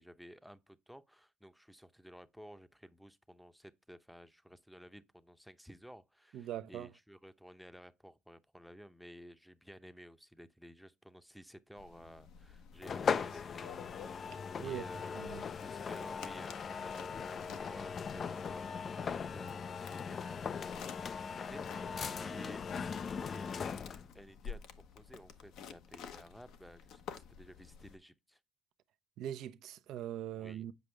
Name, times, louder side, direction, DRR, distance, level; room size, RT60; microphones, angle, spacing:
voice 1, 0.0-13.7 14.6-15.4 15.6-23.9 24.1-24.6 24.9-28.4 30.3-30.7, equal, ahead, 0.8 m, -54 dB
voice 2, 6.3-6.9 14.6-14.8 15.1-15.4 29.2-30.7, right 11 dB, 70° right, 0.6 m, -41 dB
sound 1, 11.7-28.0, left 7 dB, 70° left, 1.0 m, -52 dB
sound 2, 12.8-24.1, left 6 dB, 40° left, 0.5 m, -39 dB
7.9 x 5.1 x 3.3 m
supercardioid pair, 80°, 0 cm